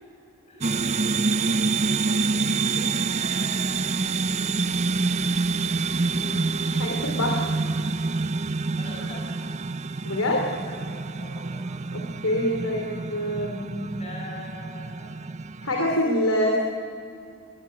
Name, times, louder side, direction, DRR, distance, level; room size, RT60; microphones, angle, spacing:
voice 1, 0.5-1.1 2.0-3.8 6.0-7.2 8.7-9.4 10.6-10.9 11.1-11.6 14.0-15.2, equal, 30° left, -1 dB, 7.5 m, -41 dB
sound 1, 0.6-16.0, right 4 dB, 30° right, 0.5 m, -27 dB
voice 2, 6.8-7.5 10.0-10.5 11.9-13.9 15.6-16.6, left 1 dB, 70° left, 2 dB, 3.1 m, -25 dB
23.0 x 22.0 x 9.7 m, 2.6 s
head